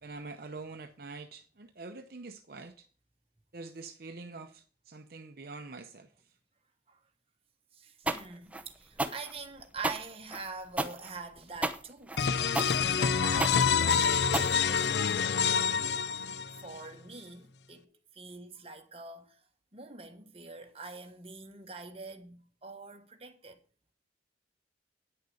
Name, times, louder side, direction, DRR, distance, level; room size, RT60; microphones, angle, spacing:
voice 1, 0.0-2.9 3.5-6.1, right 3 dB, 55° right, 0.7 m, -45 dB
voice 2, 7.7-12.2 12.6-15.3 16.6-19.4 19.7-23.6, right 4 dB, 35° right, 1.3 m, -45 dB
sound 1, 8.1-15.1, right 2 dB, 10° right, 0.7 m, -34 dB
sound 2, 12.2-16.8, left 6 dB, 70° left, 0.5 m, -27 dB
9.8 x 6.6 x 6.9 m
head